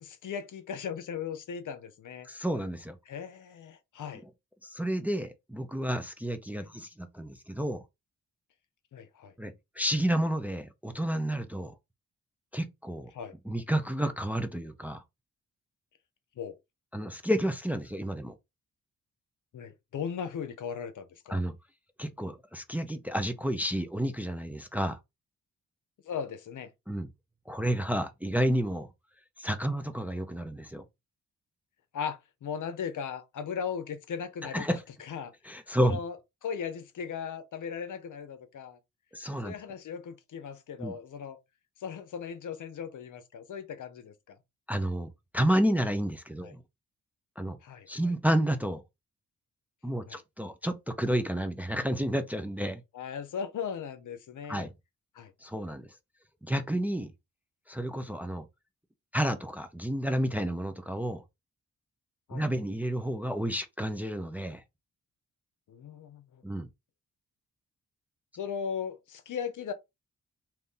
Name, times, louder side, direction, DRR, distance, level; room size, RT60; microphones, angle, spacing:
voice 1, 0.0-2.3 3.1-4.2 6.6-6.7 8.9-9.3 13.1-13.3 16.4-16.6 19.5-21.4 26.0-26.7 31.9-35.3 35.8-36.2 36.4-38.8 39.4-41.4 41.8-44.4 46.4-46.5 47.6-48.1 50.1-50.2 52.9-54.7 55.1-55.3 62.3-62.4 65.7-66.4 68.4-69.7, left 7 dB, 65° left, 0.7 m, -38 dB
voice 2, 2.2-3.0 4.6-7.8 9.4-11.7 12.5-13.1 13.5-15.0 16.9-18.3 21.3-21.5 22.0-25.0 26.9-27.1 27.5-28.9 29.4-30.8 34.5-34.8 35.4-36.0 39.1-39.5 40.8-41.0 44.7-46.6 47.4-47.6 47.9-48.8 49.8-52.8 54.5-54.7 55.4-55.9 56.4-57.1 57.7-58.4 59.1-61.2 62.3-64.6 66.4-66.7, right 1 dB, 5° right, 0.5 m, -30 dB
2.8 x 2.6 x 3.6 m
cardioid pair, 55°, 33 cm